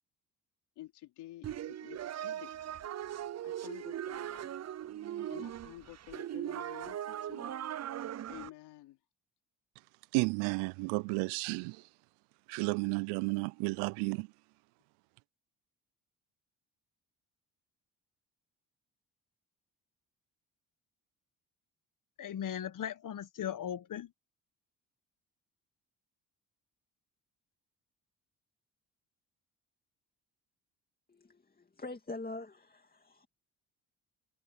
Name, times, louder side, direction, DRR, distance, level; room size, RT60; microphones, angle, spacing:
voice 1, 0.8-2.5 3.4-4.6 5.3-7.6 8.3-9.0, left 16 dB, 75° left, 3.4 m, -50 dB
sound 1, 1.4-8.5, right 11 dB, 40° right, 0.7 m, -39 dB
voice 2, 10.1-11.8 12.5-14.3, right 30 dB, 80° right, 0.6 m, -32 dB
voice 3, 22.2-24.1, left 9 dB, 50° left, 1.4 m, -38 dB
voice 4, 31.1-33.3, left 2 dB, 20° left, 2.5 m, -44 dB
hypercardioid pair, 55°, 41 cm